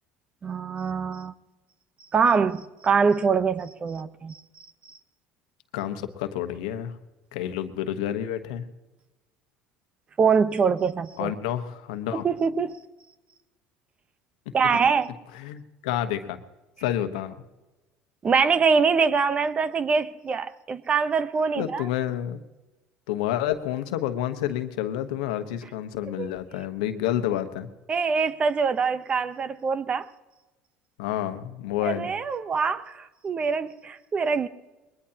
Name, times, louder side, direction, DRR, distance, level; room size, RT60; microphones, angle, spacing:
voice 1, 0.4-1.3 2.1-4.4 10.2-11.3 12.1-12.8 14.5-15.1 18.2-21.9 26.2-26.3 27.9-30.1 31.8-34.5, right 5 dB, 30° right, 14 dB, 0.8 m, -24 dB
voice 2, 5.7-7.0 7.3-8.6 11.2-12.3 15.3-16.4 16.8-17.4 21.6-22.4 23.1-27.7 31.0-32.1, left 11 dB, 90° left, 8 dB, 1.2 m, -29 dB
21.5 x 20.5 x 2.9 m, 1.1 s
supercardioid pair, 105°, 4 cm